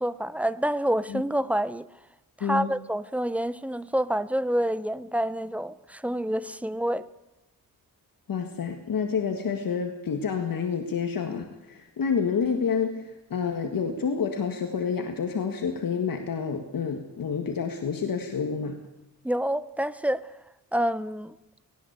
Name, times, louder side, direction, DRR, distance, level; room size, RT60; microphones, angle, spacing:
voice 1, 0.0-1.9 2.4-7.0 19.2-20.3 20.7-21.3, right 1 dB, 5° right, 0.7 m, -27 dB
voice 2, 8.3-18.8, left 6 dB, 75° left, 1.9 m, -29 dB
18.5 x 18.0 x 8.2 m
wide cardioid pair, 135°, 35 cm